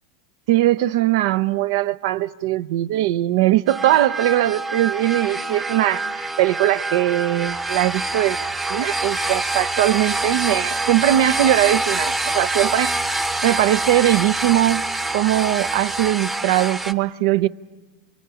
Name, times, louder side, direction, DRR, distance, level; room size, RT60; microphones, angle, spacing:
voice 1, 0.5-8.4 8.7-13.0 13.4-17.5, right 14 dB, 70° right, 0.6 m, -20 dB
sound 1, 3.7-16.9, right 2 dB, 10° right, 0.8 m, -25 dB
27.5 x 22.0 x 5.0 m
supercardioid pair, 125°, 2 cm